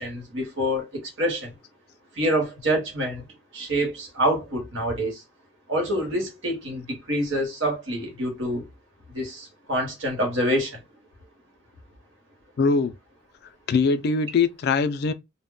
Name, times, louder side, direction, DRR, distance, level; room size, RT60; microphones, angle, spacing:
voice 1, 0.0-1.5 2.2-3.2 3.5-5.2 5.7-8.6 9.1-10.7, equal, 80° right, 1.1 m, -26 dB
voice 2, 12.6-12.9 13.7-15.1, left 4 dB, 55° left, 0.3 m, -22 dB
2.1 x 2.1 x 3.7 m
head